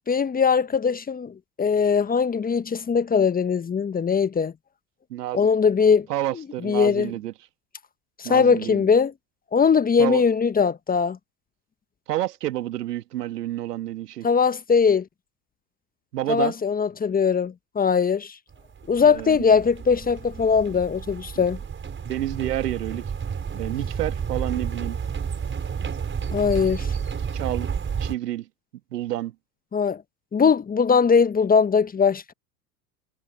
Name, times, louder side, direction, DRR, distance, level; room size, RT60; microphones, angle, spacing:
voice 1, 0.0-4.5 5.3-6.1 6.6-7.1 8.2-9.1 9.5-11.2 14.2-15.0 16.3-18.3 18.9-21.6 26.3-26.9 29.7-30.0 30.3-32.3, left 6 dB, 20° left, 1.2 m, -20 dB
voice 2, 5.1-5.5 6.1-7.3 8.2-8.9 10.0-10.2 12.1-14.3 16.1-16.5 19.0-19.4 22.1-23.1 23.5-25.0 27.3-27.7 28.0-28.5 28.9-29.3, right 14 dB, 75° right, 2.0 m, -29 dB
sound 1, 18.5-28.1, right 6 dB, 25° right, 6.1 m, -31 dB
hypercardioid pair, 85°, 48 cm